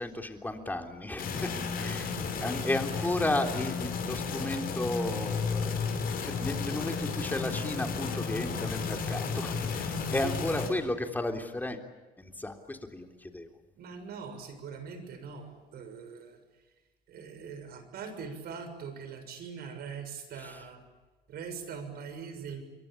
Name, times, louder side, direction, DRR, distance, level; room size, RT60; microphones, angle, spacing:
voice 1, 0.0-1.5 1.8-2.2 2.4-5.8 6.3-11.8 12.2-13.5 20.4-20.6, left 2 dB, 10° left, 4 dB, 3.5 m, -34 dB
sound 1, 1.2-10.7, left 5 dB, 60° left, 6.3 m, -33 dB
voice 2, 13.7-16.4 17.1-20.8 21.3-22.6, right 6 dB, 65° right, 9 dB, 6.6 m, -42 dB
28.0 x 23.0 x 8.7 m, 1.3 s
cardioid pair, 110°, 17 cm